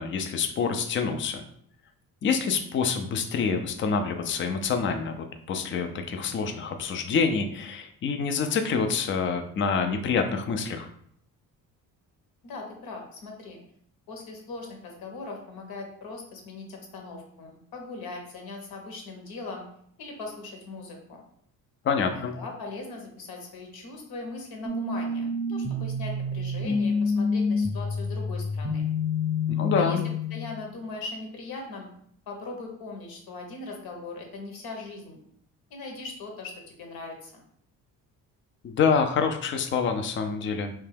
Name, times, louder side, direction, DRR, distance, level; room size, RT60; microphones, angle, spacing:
voice 1, 0.0-1.4 2.2-10.9 21.8-22.3 29.5-30.0 38.6-40.7, left 5 dB, 35° left, 6 dB, 0.4 m, -27 dB
voice 2, 12.4-13.6 14.1-19.6 20.0-21.2 22.0-28.9 29.7-30.0 30.3-31.9 32.3-35.2 35.7-37.4, left 3 dB, 75° left, 1 dB, 0.9 m, -40 dB
sound 1, 24.6-30.6, left 3 dB, 15° right, 0.7 m, -28 dB
2.8 x 2.2 x 3.3 m, 0.66 s
cardioid pair, 90°, 38 cm